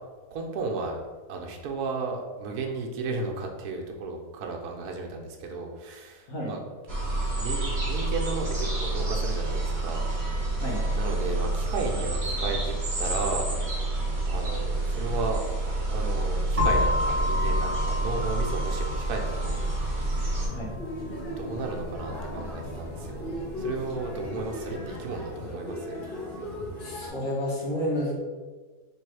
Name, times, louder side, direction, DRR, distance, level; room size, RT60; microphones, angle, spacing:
voice 1, 0.3-1.0 1.3-6.6 7.3-10.0 10.9-13.5 14.3-15.4 15.8-19.7 20.0-20.3 21.2-23.3 23.6-26.0, right 3 dB, 90° right, 2 dB, 1.2 m, -34 dB
sound 1, 6.9-20.5, right 2 dB, 35° right, 1.0 m, -28 dB
sound 2, 16.6-24.4, left 2 dB, 55° right, 0.4 m, -32 dB
sound 3, 20.4-27.1, left 1 dB, 35° left, 1.1 m, -37 dB
voice 2, 26.8-28.2, equal, 60° left, -5 dB, 1.5 m, -30 dB
3.4 x 3.1 x 4.6 m, 1.4 s
omnidirectional pair, 1.6 m